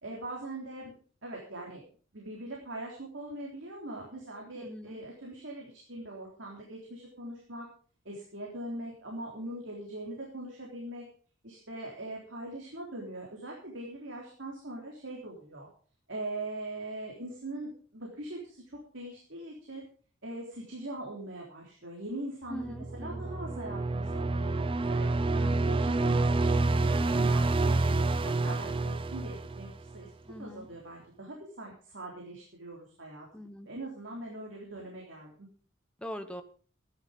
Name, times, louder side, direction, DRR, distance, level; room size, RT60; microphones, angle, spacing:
voice 1, 0.0-0.9 1.2-1.8 2.1-7.7 8.1-11.0 11.4-15.7 16.1-19.9 20.2-25.1 25.4-28.0 28.2-30.1 30.4-33.3 33.7-35.5, right 1 dB, 70° right, -2 dB, 3.6 m, -41 dB
voice 2, 4.5-5.0 22.5-23.3 25.3-25.6 30.3-30.7 33.3-33.7 36.0-36.4, equal, 5° left, 7 dB, 1.1 m, -42 dB
sound 1, 22.6-30.0, right 2 dB, 25° right, 0.5 m, -28 dB
15.0 x 11.0 x 5.3 m, 0.43 s
head